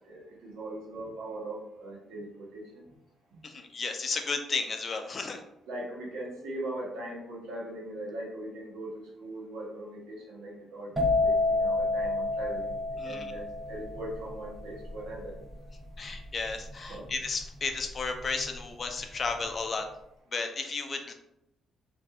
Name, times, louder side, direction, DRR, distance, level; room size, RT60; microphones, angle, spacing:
voice 1, 0.0-2.6 5.7-10.9 11.2-12.7 13.0-15.3 16.7-17.1, right 1 dB, 90° right, -3 dB, 0.7 m, -40 dB
voice 2, 3.4-5.4 13.0-13.3 16.0-19.8 20.3-21.1, left 4 dB, 40° left, 5 dB, 0.4 m, -33 dB
sound 1, 11.0-18.5 18.8-19.3, left 2 dB, 15° right, 0.6 m, -30 dB
2.7 x 2.3 x 2.3 m, 0.82 s
cardioid pair, 90°, 0 cm